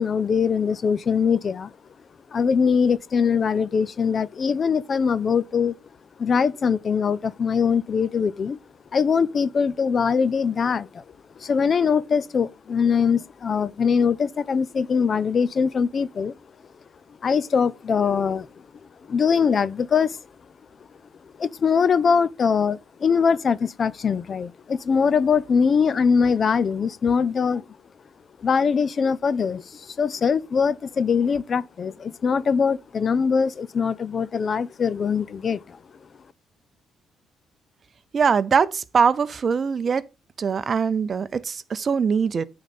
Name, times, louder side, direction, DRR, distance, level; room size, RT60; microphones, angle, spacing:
voice 1, 0.0-1.7 2.3-5.8 6.2-8.6 8.9-11.0 11.4-16.3 17.2-18.5 19.1-20.2 21.4-27.6 28.4-35.8, left 6 dB, 45° left, 0.5 m, -22 dB
voice 2, 38.1-40.1 40.4-42.4, right 6 dB, 45° right, 0.6 m, -22 dB
9.1 x 4.0 x 5.3 m
cardioid pair, 90°, 0 cm